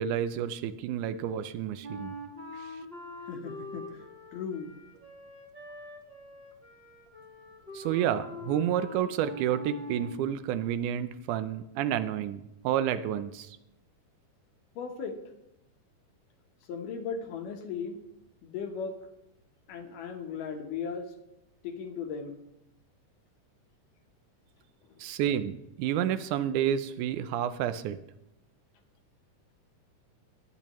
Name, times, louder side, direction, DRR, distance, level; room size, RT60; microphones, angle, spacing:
voice 1, 0.0-2.2 2.6-2.7 7.7-13.6 25.0-28.0, right 10 dB, 80° right, 12 dB, 2.0 m, -30 dB
Wind instrument woodwind instrument, 1.8-10.2, left 1 dB, 40° right, 0.8 m, -44 dB
voice 2, 3.2-4.0 4.3-4.7 14.8-15.2 16.7-18.0 18.4-19.0 19.7-21.1 21.6-22.4 24.9-25.0, left 6 dB, 80° left, 4 dB, 2.8 m, -37 dB
20.5 x 8.9 x 3.1 m, 0.87 s
omnidirectional pair, 3.7 m